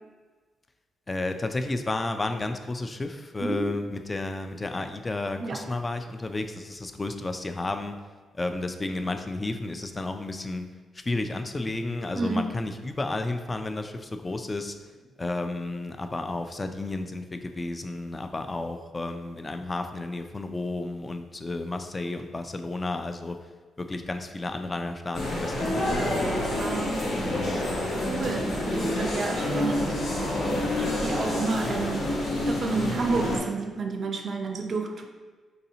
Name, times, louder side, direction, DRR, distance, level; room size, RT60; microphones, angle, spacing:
voice 1, 1.1-7.9 8.3-10.6 11.1-14.8 15.2-23.4 23.8-26.7, left 2 dB, 30° left, 7 dB, 0.3 m, -32 dB
voice 2, 12.1-12.5 26.5-27.0 28.1-30.0 30.8-32.1 32.5-35.1, right 3 dB, 55° right, 4 dB, 0.5 m, -30 dB
sound 1, 25.1-33.4, left 1 dB, 75° left, 0.8 m, -28 dB
4.1 x 2.7 x 2.7 m, 1.4 s
supercardioid pair, 55°, 0 cm